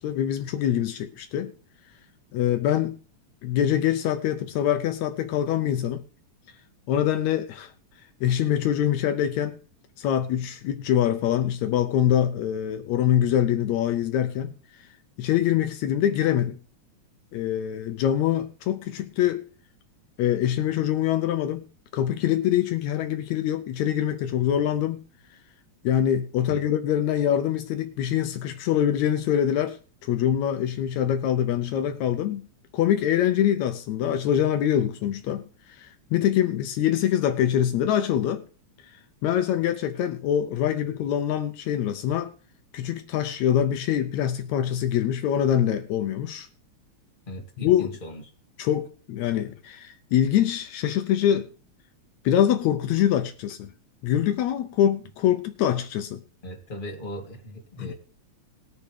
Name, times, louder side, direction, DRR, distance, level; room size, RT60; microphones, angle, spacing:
voice 1, 0.0-1.5 2.3-3.0 3.4-6.0 6.9-7.7 8.2-9.6 10.0-14.6 15.2-16.6 17.3-19.5 20.2-21.6 21.9-25.0 25.8-29.8 30.0-32.4 32.7-38.4 39.2-42.3 42.7-46.5 47.6-47.9 48.6-51.5 52.3-53.7 54.0-56.2 57.8-57.9, left 10 dB, 80° left, 2.0 m, -24 dB
voice 2, 47.3-48.2 56.4-57.9, equal, 20° left, 2.2 m, -38 dB
20.5 x 6.9 x 3.3 m
omnidirectional pair, 3.3 m